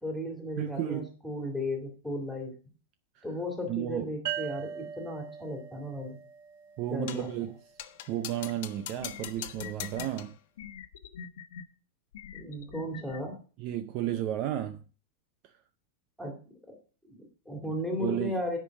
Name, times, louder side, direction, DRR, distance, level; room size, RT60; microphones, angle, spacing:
voice 1, 0.0-2.6 3.2-6.2 6.9-7.3 12.3-13.4 16.2-16.4 16.7-16.8 17.0-18.6, left 1 dB, ahead, 2.3 m, -35 dB
voice 2, 0.6-1.1 3.1-3.2 3.7-4.1 6.8-7.6 8.1-10.4 13.6-14.8 15.4-15.6 18.0-18.4, right 12 dB, 30° right, 0.6 m, -33 dB
sound 1, 4.3-7.7, right 9 dB, 50° right, 1.2 m, -40 dB
sound 2, 7.1-7.4 7.8-10.4, left 13 dB, 50° left, 0.9 m, -42 dB
sound 3, 8.5-8.6 9.0-10.1 10.6-11.6 12.1-13.2, left 7 dB, 75° left, 1.2 m, -43 dB
10.5 x 5.3 x 7.0 m
supercardioid pair, 180°, 0 cm